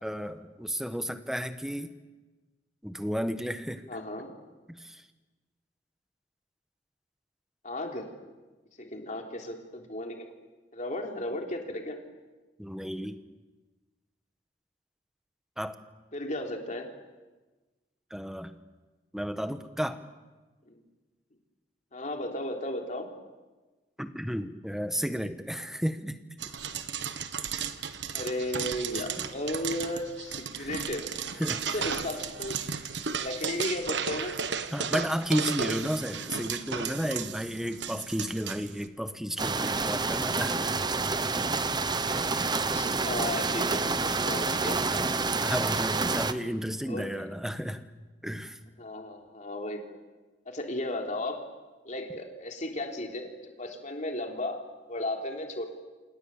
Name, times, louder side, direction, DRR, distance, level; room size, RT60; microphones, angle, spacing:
voice 1, 0.0-1.9 2.8-4.0 4.7-5.0 12.6-13.2 15.6-15.8 18.1-18.5 19.1-20.0 24.0-26.2 29.0-29.3 30.5-30.8 31.1-31.9 34.7-40.7 44.9-47.8 48.2-48.6, equal, 5° right, 9 dB, 1.3 m, -33 dB
voice 2, 3.9-4.3 7.6-8.1 8.8-10.3 10.7-12.0 16.1-16.9 20.7-20.8 21.9-23.1 28.1-31.1 31.7-32.6 33.1-34.3 42.7-44.9 46.9-47.1 48.8-50.0 50.5-51.4 51.8-54.6 54.9-55.6, left 1 dB, 40° left, 2 dB, 3.5 m, -35 dB
sound 1, 26.4-38.9, right 6 dB, 70° right, 1.4 m, -35 dB
sound 2, 39.4-46.3, right 3 dB, 25° right, 1.0 m, -28 dB
28.0 x 27.0 x 7.3 m, 1.2 s
head